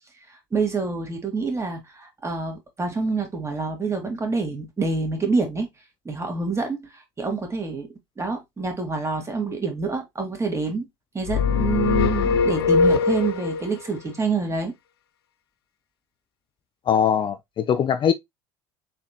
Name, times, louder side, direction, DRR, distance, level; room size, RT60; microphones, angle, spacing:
voice 1, 0.5-5.7 6.1-7.9 8.2-10.9 11.1-14.7, right 4 dB, 20° right, 2.1 m, -27 dB
sound 1, 11.3-13.7, left 5 dB, 85° left, 0.5 m, -21 dB
voice 2, 16.9-18.1, left 8 dB, 40° left, 0.6 m, -21 dB
4.2 x 3.7 x 2.8 m
hypercardioid pair, 70°, 13 cm